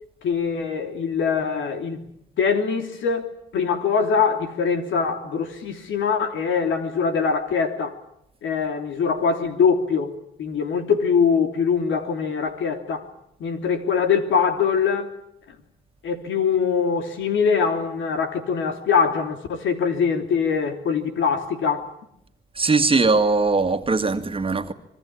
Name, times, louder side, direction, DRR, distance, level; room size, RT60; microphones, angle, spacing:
voice 1, 0.2-2.1 2.4-7.9 8.4-13.0 13.4-15.1 16.0-21.8, left 6 dB, 75° left, 3.2 m, -23 dB
voice 2, 22.6-24.7, right 3 dB, 25° right, 2.1 m, -20 dB
26.0 x 22.0 x 8.6 m
cardioid pair, 90°, 20 cm